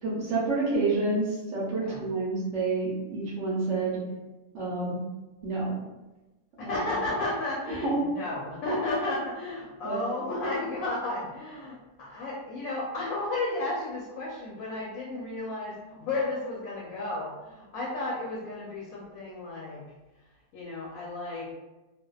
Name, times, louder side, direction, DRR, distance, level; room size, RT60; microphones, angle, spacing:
voice 1, 0.0-4.0 4.5-4.9 5.4-5.8 7.8-8.0 9.8-10.0, right 3 dB, 60° right, -6 dB, 0.8 m, -28 dB
voice 2, 6.6-19.8 20.5-21.5, left 2 dB, 70° left, -4 dB, 1.0 m, -33 dB
2.6 x 2.2 x 2.2 m, 1.1 s
omnidirectional pair, 1.6 m